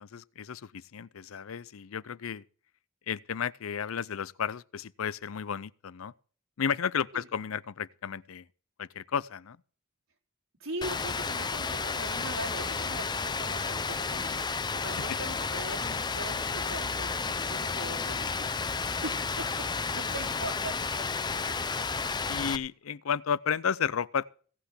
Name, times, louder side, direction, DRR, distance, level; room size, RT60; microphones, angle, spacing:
voice 1, 0.0-2.4 3.1-6.1 6.6-8.5 8.8-9.6 22.3-24.3, left 7 dB, 85° left, 0.5 m, -33 dB
voice 2, 10.6-14.4 14.7-19.4 19.9-21.7 22.0-22.1, right 1 dB, 85° right, 4.0 m, -41 dB
Rain, 10.8-22.6, left 4 dB, 20° left, 0.6 m, -32 dB
17.0 x 5.9 x 8.2 m
head